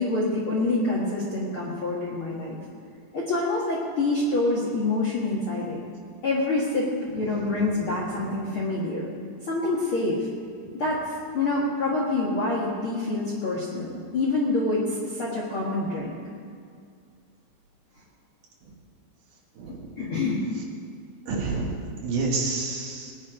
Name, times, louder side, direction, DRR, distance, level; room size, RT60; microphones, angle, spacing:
voice 1, 0.0-2.6 3.1-5.8 6.2-9.1 9.5-10.3 10.7-16.1 20.0-20.4, left 2 dB, 55° left, -5 dB, 1.4 m, -26 dB
voice 2, 7.3-7.7 19.6-19.9 21.3-23.1, right 3 dB, 55° right, -1 dB, 2.7 m, -29 dB
19.5 x 9.8 x 5.1 m, 2.2 s
omnidirectional pair, 5.0 m